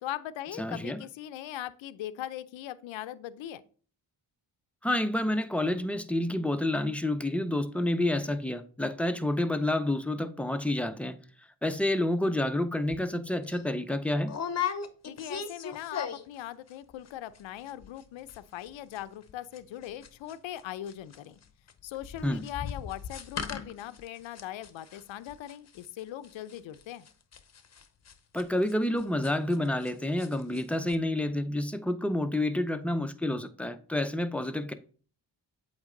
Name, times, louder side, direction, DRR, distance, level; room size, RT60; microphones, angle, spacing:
voice 1, 0.0-3.6 15.0-21.4 21.8-27.1, left 12 dB, 80° left, 0.5 m, -40 dB
voice 2, 0.6-1.0 4.8-11.2 11.6-14.3 22.2-22.4 28.3-34.7, left 1 dB, 5° left, 0.5 m, -29 dB
sound 1, 12.9-13.1 13.4-13.6 14.3-16.4 16.7-17.1 17.3-17.4 17.7-18.0 18.3-20.6 20.9-29.9 30.2-30.6 30.9-31.0, left 7 dB, 35° left, 0.7 m, -38 dB
8.1 x 3.3 x 3.8 m
cardioid pair, 70°, 46 cm